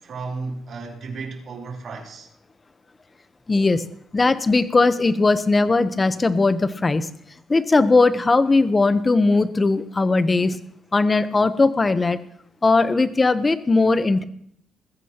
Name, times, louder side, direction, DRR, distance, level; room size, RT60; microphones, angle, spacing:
voice 1, 0.0-2.3, right 4 dB, 60° right, 3.7 m, -33 dB
voice 2, 3.5-3.8 4.1-7.1 7.5-10.6 10.9-12.2 12.6-14.2, left 3 dB, 25° left, 0.9 m, -19 dB
21.5 x 14.5 x 3.0 m
cardioid pair, 90°, 0 cm